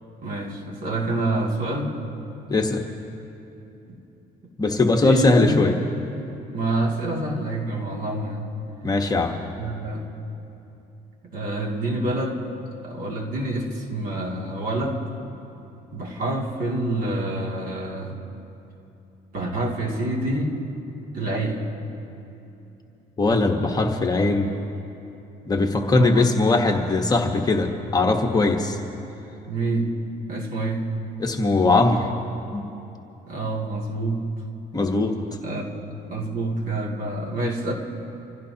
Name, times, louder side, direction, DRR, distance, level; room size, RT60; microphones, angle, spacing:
voice 1, 0.2-2.0 3.9-4.0 4.8-5.6 6.5-8.5 9.5-10.1 11.2-12.4 12.8-15.0 15.9-18.2 19.3-20.6 21.1-21.7 25.9-26.2 29.5-31.1 33.3-34.4 35.4-37.7, right 2 dB, 55° right, -1 dB, 2.6 m, -27 dB
voice 2, 2.5-2.8 4.6-5.7 8.8-9.4 23.2-24.5 25.5-28.8 31.2-32.1 32.5-32.6 34.7-35.2, left 3 dB, 20° left, 2 dB, 1.2 m, -20 dB
26.5 x 16.0 x 2.9 m, 2.9 s
cardioid pair, 110°, 17 cm